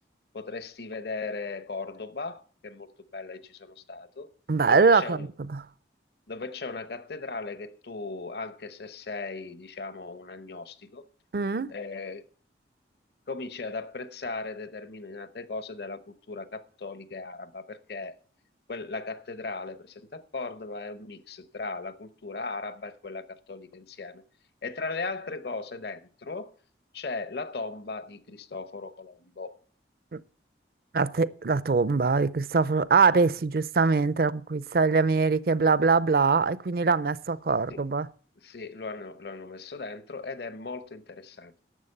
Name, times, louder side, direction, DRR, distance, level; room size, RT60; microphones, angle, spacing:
voice 1, 0.3-4.3 4.7-5.3 6.3-11.0 11.7-12.2 13.3-18.1 18.7-24.2 24.6-26.5 26.9-29.5 37.7-37.8 38.4-41.5, left 3 dB, 65° left, 0.9 m, -37 dB
voice 2, 4.5-5.6 11.3-11.7 30.1-30.2 30.9-38.1, right 4 dB, 55° right, 0.5 m, -23 dB
11.0 x 7.2 x 6.6 m
head